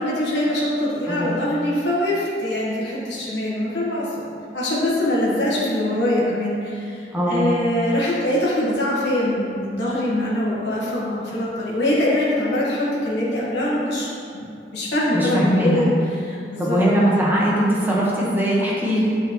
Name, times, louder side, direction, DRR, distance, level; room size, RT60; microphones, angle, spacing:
voice 1, 0.0-4.3 4.5-16.8 17.3-17.4, left 1 dB, 70° left, -7 dB, 1.4 m, -23 dB
voice 2, 7.1-7.5 15.1-15.9 16.6-19.2, equal, 10° right, -6 dB, 1.2 m, -20 dB
8.5 x 4.3 x 3.0 m, 2.5 s
head